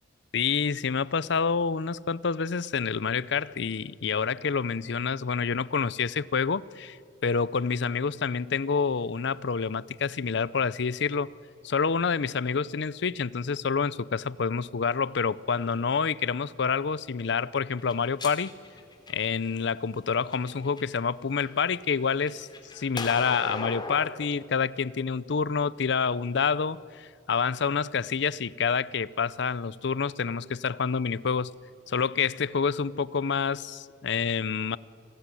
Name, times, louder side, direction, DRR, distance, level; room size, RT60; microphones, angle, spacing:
voice 1, 0.3-7.0 7.2-11.3 11.6-18.5 19.1-22.5 22.7-31.5 31.9-34.8, left 5 dB, 65° left, 0.6 m, -28 dB
sound 1, 17.8-19.5 20.1-21.0 21.4-24.1, left 2 dB, 25° left, 2.9 m, -38 dB
29.0 x 20.5 x 9.9 m
head